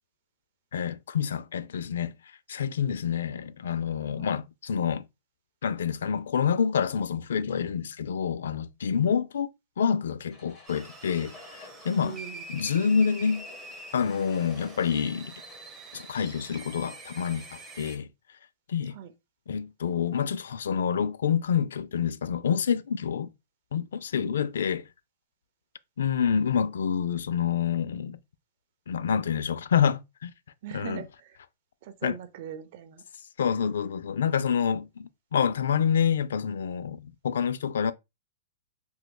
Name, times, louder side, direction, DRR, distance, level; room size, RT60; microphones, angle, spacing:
voice 1, 0.7-2.2 2.5-5.1 5.6-9.5 9.8-12.2 12.5-13.5 13.9-15.3 15.9-18.1 18.7-19.0 19.5-23.3 23.7-24.9 26.0-28.2 28.9-30.3 30.7-31.0 32.0-32.2 33.4-37.9, left 7 dB, 85° left, 0.3 m, -27 dB
sound 1, 10.3-18.0, left 3 dB, 25° left, 1.2 m, -53 dB
sound 2, 10.7-18.0, right 3 dB, 15° right, 0.9 m, -45 dB
voice 2, 12.0-12.4 18.9-19.1 24.1-24.4 30.6-31.4 31.8-33.0, right 10 dB, 55° right, 0.6 m, -41 dB
3.5 x 2.9 x 2.2 m
hypercardioid pair, 140°, 0 cm